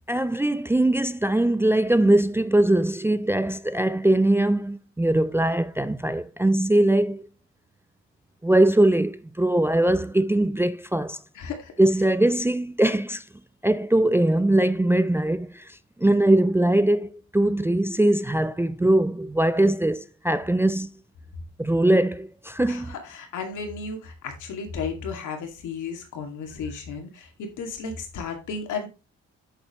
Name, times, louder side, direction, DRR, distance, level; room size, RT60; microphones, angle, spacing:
voice 1, 0.1-7.2 8.4-11.2 11.8-13.2 13.6-20.9 21.6-22.9, right 1 dB, 10° right, 0.4 m, -21 dB
voice 2, 11.3-11.7 22.7-28.9, left 5 dB, 80° left, 2.3 m, -34 dB
7.8 x 7.2 x 3.1 m
cardioid pair, 90°, 30 cm